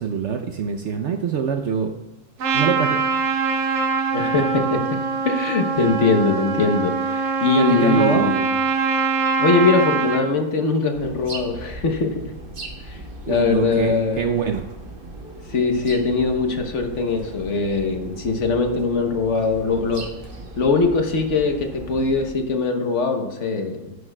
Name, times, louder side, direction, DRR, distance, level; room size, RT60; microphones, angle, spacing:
voice 1, 0.0-2.0 2.5-3.2 7.5-8.3 13.3-14.7, right 6 dB, 65° right, 5 dB, 0.8 m, -24 dB
Trumpet, 2.4-10.2, right 5 dB, 85° right, 1.5 m, -23 dB
voice 2, 4.1-4.8 5.2-8.4 9.1-12.1 12.8-13.0 13.3-14.2 15.5-20.0 20.6-23.9, left 4 dB, 55° left, 5 dB, 1.1 m, -21 dB
sound 1, 10.9-22.3, right 2 dB, 40° right, 1.2 m, -38 dB
11.0 x 9.7 x 2.2 m, 1.1 s
omnidirectional pair, 1.6 m